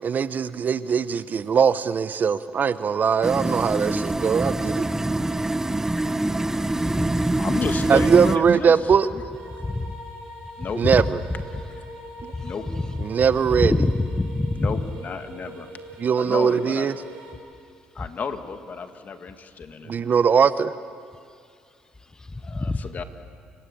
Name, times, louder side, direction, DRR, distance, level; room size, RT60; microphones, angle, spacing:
voice 1, 0.0-4.9 7.9-9.1 10.8-11.2 13.0-13.7 16.0-16.9 19.9-20.7, right 6 dB, 45° right, 15 dB, 0.8 m, -20 dB
sound 1, 3.2-8.4, right 2 dB, 10° right, 1.0 m, -25 dB
voice 2, 7.4-8.8 9.1-9.2 10.6-10.8 12.4-12.7 14.5-15.7 16.2-17.0 18.0-20.2 22.4-23.0, left 5 dB, 45° left, 8 dB, 2.0 m, -33 dB
sound 2, 9.3-17.3, right 1 dB, 80° right, 6.8 m, -43 dB
voice 3, 9.6-10.0 10.9-11.0 12.3-12.4 13.6-14.7 22.5-22.8, left 2 dB, 15° left, 12 dB, 1.1 m, -24 dB
30.0 x 17.0 x 8.6 m, 2.2 s
supercardioid pair, 65°, 4 cm